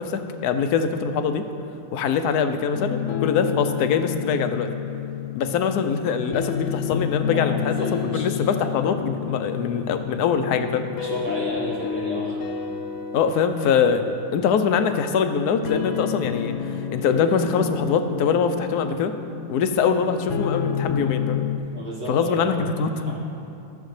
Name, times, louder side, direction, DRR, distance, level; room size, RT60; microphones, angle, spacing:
voice 1, 0.0-1.5 1.9-4.7 5.3-7.7 8.1-10.9 13.1-19.1 19.5-21.5 22.1-22.9, left 6 dB, 85° left, 8 dB, 1.1 m, -23 dB
sound 1, 2.7-21.6, left 8 dB, 65° left, 0.8 m, -30 dB
voice 2, 7.2-8.5 11.0-12.5 21.7-22.7 23.1-23.2, equal, 80° right, -6 dB, 2.7 m, -32 dB
14.0 x 7.2 x 3.2 m, 2.7 s
omnidirectional pair, 1.6 m